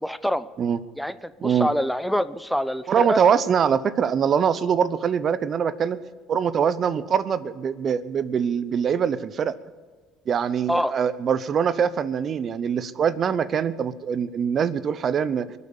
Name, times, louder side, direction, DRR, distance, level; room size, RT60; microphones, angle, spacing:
voice 1, 0.0-0.5 1.0-3.2 10.7-10.9, equal, ahead, 15 dB, 0.6 m, -25 dB
voice 2, 2.9-6.0 6.3-9.6 10.3-15.5, right 7 dB, 45° right, 16 dB, 0.8 m, -23 dB
23.0 x 8.3 x 6.8 m, 1.4 s
hypercardioid pair, 75°, 0 cm